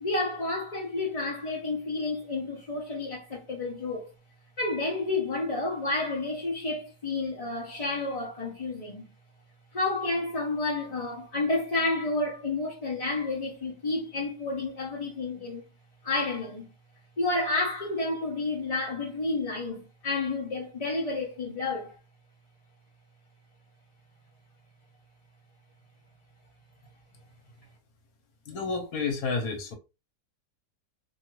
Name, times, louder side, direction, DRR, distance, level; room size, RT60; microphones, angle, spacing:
voice 1, 0.0-4.1 4.6-9.1 9.7-15.6 16.0-16.7 17.2-21.9, left 2 dB, 45° left, 0.5 m, -30 dB
voice 2, 28.5-29.7, left 4 dB, 70° left, 1.2 m, -30 dB
2.7 x 2.4 x 3.0 m
omnidirectional pair, 1.7 m